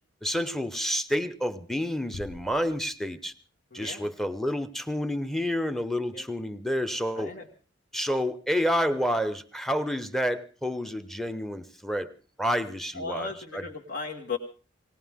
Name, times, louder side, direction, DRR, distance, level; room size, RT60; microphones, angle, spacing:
voice 1, 0.2-3.3 3.7-7.3 7.9-12.1 12.4-13.7, equal, ahead, 11 dB, 0.9 m, -29 dB
sound 1, 2.1-3.7, left 3 dB, 85° left, 0.8 m, -47 dB
voice 2, 3.7-4.1 6.1-6.3 7.1-7.5 12.9-14.4, left 4 dB, 55° left, 0 dB, 1.8 m, -36 dB
19.0 x 19.0 x 3.7 m, 0.39 s
head